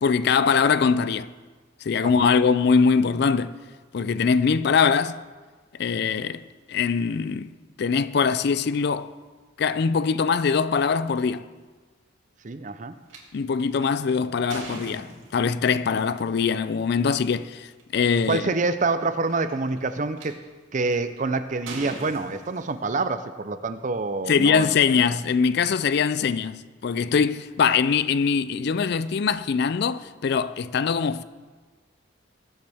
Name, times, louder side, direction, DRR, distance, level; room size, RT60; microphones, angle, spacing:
voice 1, 0.0-1.3 1.8-3.6 3.9-5.2 5.8-6.4 6.7-7.5 7.8-9.1 9.6-11.5 13.3-18.4 24.3-31.2, left 5 dB, 55° left, 0.4 m, -22 dB
voice 2, 2.0-2.3 12.4-13.0 18.3-20.4 20.7-24.7 24.9-25.1, right 3 dB, 40° right, 0.6 m, -27 dB
sound 1, 13.1-13.2 13.8-15.7 16.9-17.1 17.8-17.9 18.1-18.5 19.3-20.2 20.9-21.2 21.7-23.1, right 2 dB, 80° right, 2.7 m, -40 dB
20.5 x 8.0 x 3.5 m
head